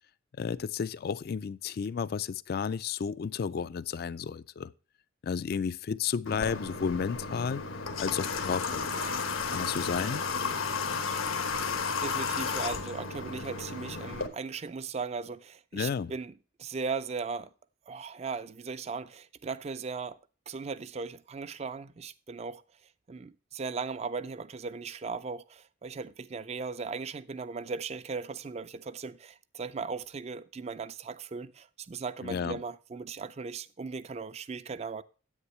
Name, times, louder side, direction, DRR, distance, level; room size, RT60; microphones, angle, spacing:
voice 1, 0.4-4.7 5.2-7.6 8.0-9.1 9.5-10.2 15.7-16.1 32.2-32.6, left 6 dB, 50° left, 0.3 m, -32 dB
Water / Water tap faucet, 6.3-14.3, left 5 dB, 90° left, 1.2 m, -33 dB
voice 2, 12.0-16.3 16.6-17.5 17.9-20.2 20.5-22.6 23.1-35.0, right 4 dB, 30° right, 0.4 m, -37 dB
9.8 x 8.8 x 3.1 m
head